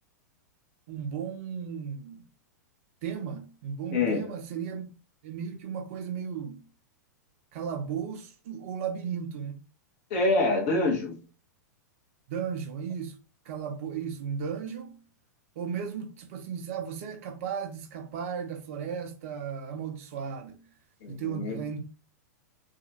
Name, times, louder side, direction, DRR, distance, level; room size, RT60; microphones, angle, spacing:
voice 1, 0.9-2.2 3.0-4.9 5.2-6.6 7.5-9.6 12.3-13.2 13.5-15.0 15.6-20.6 21.1-21.8, right 7 dB, 50° right, 0.4 m, -35 dB
voice 2, 3.9-4.3 10.1-11.2 21.0-21.7, left 2 dB, 45° left, 1.0 m, -26 dB
2.7 x 2.3 x 2.6 m
figure-of-eight pair, 100°, 10 cm